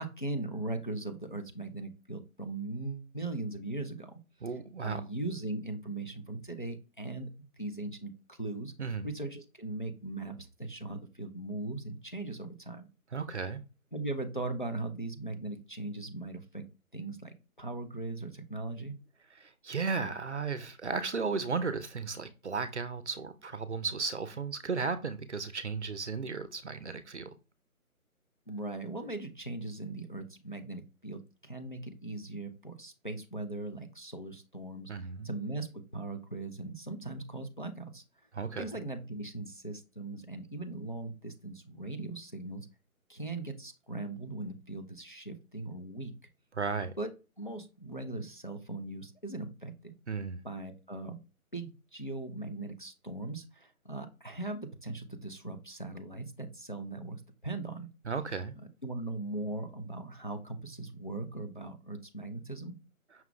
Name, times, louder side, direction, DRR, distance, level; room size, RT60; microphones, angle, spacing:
voice 1, 0.0-4.2 4.8-8.7 9.0-12.9 13.9-16.7 16.9-19.0 28.5-34.9 35.2-35.7 35.9-38.0 38.6-42.7 43.1-46.2 47.0-47.1 47.4-49.9 50.4-51.2 51.5-57.9 58.8-62.8, right 2 dB, 35° left, 0.5 m, -39 dB
voice 2, 4.4-5.0 8.8-9.1 13.1-13.6 19.3-27.3 34.9-35.3 38.3-38.7 46.5-46.9 50.1-50.4 58.0-58.6, right 4 dB, 55° right, 0.6 m, -35 dB
5.7 x 2.3 x 3.6 m
figure-of-eight pair, 165°, 43 cm